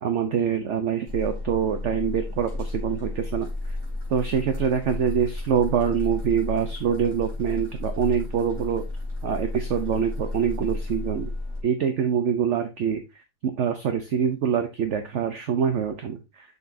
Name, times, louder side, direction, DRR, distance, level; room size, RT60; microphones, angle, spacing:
voice 1, 0.0-3.5 4.1-8.8 9.2-11.3 11.6-13.0 13.4-16.2, right 7 dB, 55° right, 7 dB, 0.9 m, -25 dB
sound 1, 1.1-11.6, left 2 dB, 30° right, 3.9 m, -33 dB
6.9 x 6.4 x 2.7 m, 0.24 s
omnidirectional pair, 1.8 m